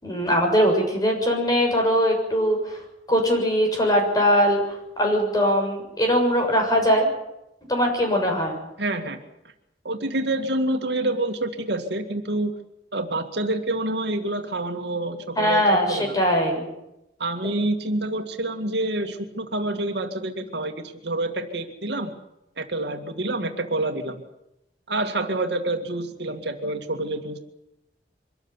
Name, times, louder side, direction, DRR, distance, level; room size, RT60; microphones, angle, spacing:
voice 1, 0.0-2.8 3.1-4.6 5.0-7.1 7.7-8.6 15.4-16.7, equal, 20° left, 2 dB, 6.9 m, -21 dB
voice 2, 8.8-9.2 9.8-12.5 12.9-16.2 17.2-22.1 22.6-24.2 24.9-27.4, right 2 dB, 75° right, 5 dB, 2.1 m, -27 dB
24.5 x 14.0 x 9.8 m, 0.88 s
head